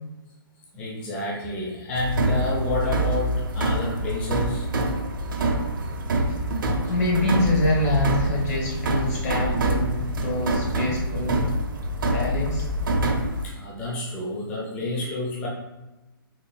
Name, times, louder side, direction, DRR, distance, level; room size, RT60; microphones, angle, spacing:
voice 1, 0.7-4.7 13.4-15.5, left 2 dB, 10° left, -5 dB, 0.4 m, -29 dB
sound 1, 1.9-13.4, right 1 dB, 60° right, 0.6 m, -26 dB
voice 2, 6.7-11.5 12.1-12.7, left 2 dB, 45° left, -4 dB, 1.4 m, -25 dB
3.7 x 3.5 x 2.2 m, 1.1 s
hypercardioid pair, 160°, 12 cm